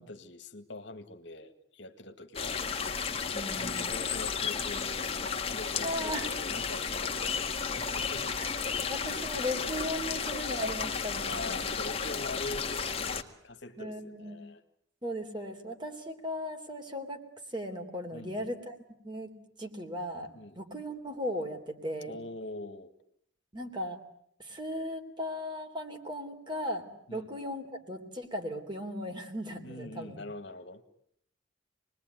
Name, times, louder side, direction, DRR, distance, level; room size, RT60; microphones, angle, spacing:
voice 1, 0.0-8.4 11.3-14.6 18.1-18.6 20.3-20.6 22.1-22.9 27.1-27.3 29.6-30.8, left 2 dB, 60° left, 8 dB, 2.2 m, -44 dB
sound 1, 2.3-13.2, left 6 dB, 30° left, 1.9 m, -33 dB
voice 2, 3.3-3.9 5.8-6.3 8.4-8.5 8.9-11.7 13.8-14.4 15.0-17.2 17.5-18.8 19.0-19.3 19.6-22.2 23.5-24.0 24.4-30.2, equal, 25° right, 4 dB, 3.4 m, -37 dB
27.5 x 21.0 x 9.5 m, 0.70 s
head